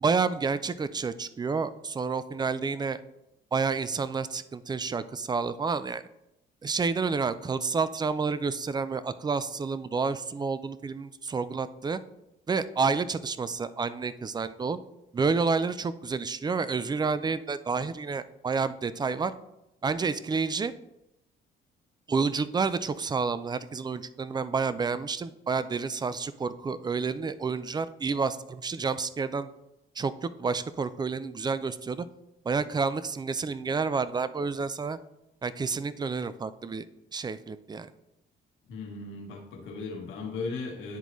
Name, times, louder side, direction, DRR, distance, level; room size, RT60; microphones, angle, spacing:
voice 1, 0.0-3.0 3.5-6.1 6.6-12.0 12.5-14.8 15.1-19.3 19.8-20.7 22.1-29.5 30.0-32.1 32.4-35.0 35.4-36.9 37.1-37.9, right 4 dB, 20° right, 14 dB, 0.4 m, -29 dB
voice 2, 38.7-41.0, left 3 dB, 90° left, 0 dB, 1.5 m, -37 dB
10.5 x 3.9 x 3.1 m, 0.87 s
cardioid pair, 90°, 20 cm